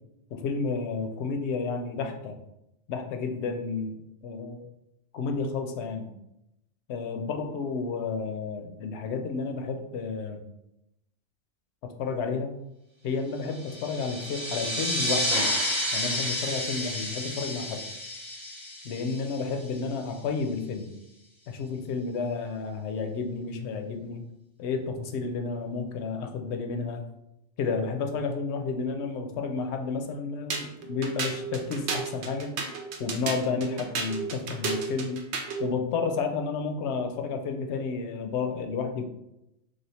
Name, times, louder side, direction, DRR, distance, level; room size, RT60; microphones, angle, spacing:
voice 1, 0.3-2.4 2.9-4.6 5.1-6.1 6.9-10.5 11.8-12.6 13.0-15.5 15.9-17.8 18.8-20.9 21.5-24.3 24.6-27.0 27.6-32.5 33.0-35.2 35.6-39.0, left 4 dB, 75° left, 5 dB, 0.8 m, -31 dB
sound 1, 13.5-19.7, equal, 25° right, 1.0 m, -31 dB
sound 2, 30.5-35.7, right 4 dB, 75° right, 0.9 m, -33 dB
3.3 x 2.5 x 4.1 m, 0.87 s
omnidirectional pair, 1.2 m